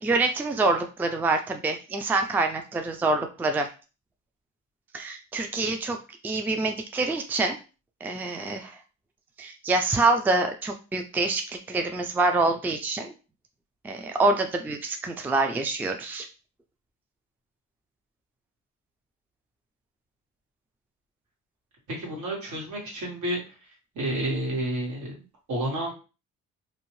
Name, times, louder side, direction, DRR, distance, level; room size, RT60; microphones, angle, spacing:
voice 1, 0.0-3.7 4.9-6.0 6.2-7.6 8.0-8.8 9.4-13.1 13.8-16.3, right 3 dB, 5° right, 5 dB, 0.3 m, -26 dB
voice 2, 21.9-23.4 23.9-25.9, right 1 dB, 75° right, -2 dB, 1.4 m, -30 dB
2.7 x 2.0 x 3.0 m, 0.32 s
cardioid pair, 90°, 30 cm